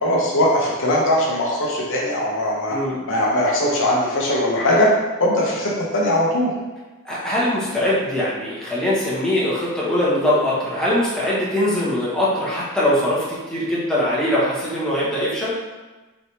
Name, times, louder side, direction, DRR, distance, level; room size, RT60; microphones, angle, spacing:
voice 1, 0.0-2.8 3.1-6.5, left 1 dB, 60° left, -4 dB, 0.8 m, -20 dB
voice 2, 7.0-15.6, left 1 dB, 5° left, -9 dB, 1.0 m, -22 dB
4.0 x 3.3 x 2.8 m, 1.2 s
head